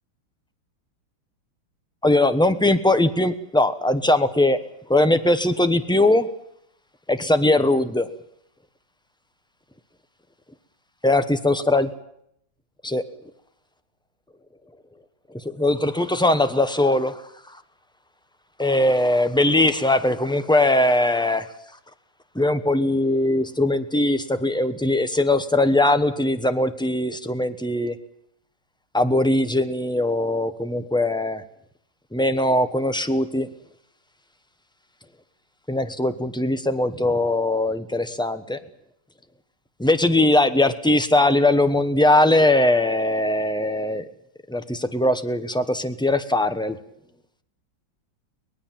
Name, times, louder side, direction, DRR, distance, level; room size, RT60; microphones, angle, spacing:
voice 1, 2.0-4.6 4.9-6.3 7.1-8.1 11.0-11.9 12.8-13.0 15.3-17.2 18.6-21.5 22.3-28.0 28.9-31.4 32.1-33.5 35.7-38.6 39.8-44.0 44.5-46.8, left 1 dB, 5° left, 10 dB, 0.4 m, -20 dB
23.5 x 19.5 x 7.5 m, 0.73 s
omnidirectional pair, 2.2 m